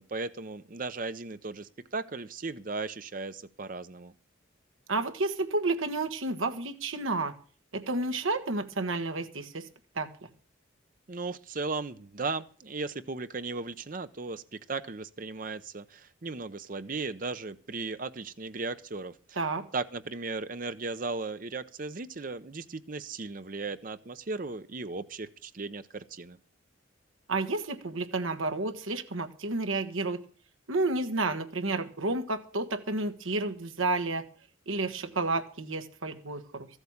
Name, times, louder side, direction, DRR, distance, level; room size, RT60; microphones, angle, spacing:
voice 1, 0.0-4.1 11.1-19.4 19.7-26.4, right 3 dB, 40° right, 11 dB, 0.7 m, -36 dB
voice 2, 4.9-7.3 7.7-9.7 9.9-10.1 19.4-19.6 27.3-30.2 30.7-34.2 34.7-36.7, right 2 dB, 80° right, 7 dB, 1.4 m, -31 dB
14.5 x 8.1 x 7.1 m, 0.42 s
head